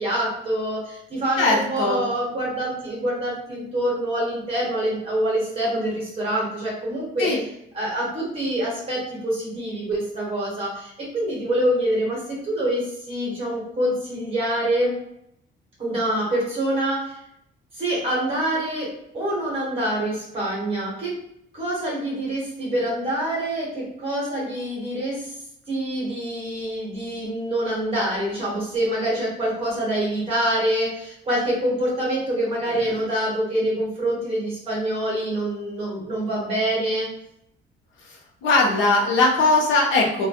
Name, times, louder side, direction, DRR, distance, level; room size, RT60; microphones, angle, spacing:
voice 1, 0.0-7.3 7.7-14.9 15.8-17.2 17.8-21.1 21.5-25.3 25.7-37.1, right 1 dB, 30° right, -5 dB, 1.0 m, -25 dB
voice 2, 1.4-2.1 7.2-7.4 32.7-32.8 38.4-40.3, left 3 dB, 80° left, -2 dB, 0.7 m, -20 dB
2.2 x 2.1 x 2.8 m, 0.77 s
cardioid pair, 180°, 20 cm